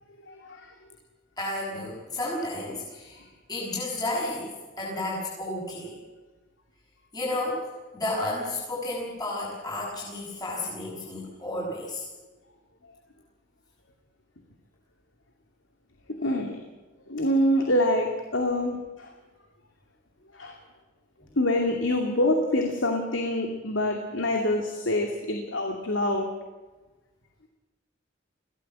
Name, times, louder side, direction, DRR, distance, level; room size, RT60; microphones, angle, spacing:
voice 1, 0.3-0.7 16.2-16.6 17.1-19.1 20.3-20.6 21.4-26.3, left 1 dB, 85° left, 3 dB, 2.6 m, -26 dB
voice 2, 1.4-3.2 3.5-6.0 7.1-12.1, left 1 dB, 20° left, -5 dB, 7.0 m, -32 dB
22.5 x 17.0 x 7.6 m, 1.2 s
head